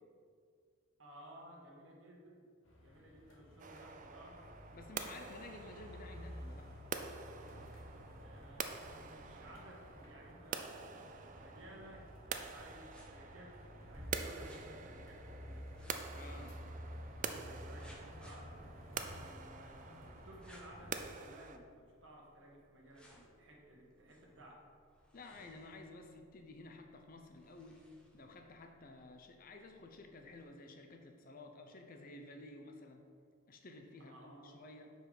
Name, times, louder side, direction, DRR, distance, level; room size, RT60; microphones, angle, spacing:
voice 1, 1.0-2.5 2.8-4.4 8.2-15.6 17.1-24.7 34.0-34.6, right 1 dB, 60° right, -1 dB, 1.3 m, -57 dB
sound 1, 2.6-21.0, equal, 60° left, 1.2 m, -52 dB
sound 2, 3.6-21.6, right 6 dB, 35° right, 0.4 m, -47 dB
voice 2, 4.7-6.7 16.1-16.6 25.1-27.8 28.1-33.0 33.5-34.9, left 2 dB, 40° left, 4 dB, 0.6 m, -53 dB
sound 3, 12.7-30.4, equal, 5° left, 0.8 m, -60 dB
5.9 x 5.3 x 4.9 m, 2.2 s
head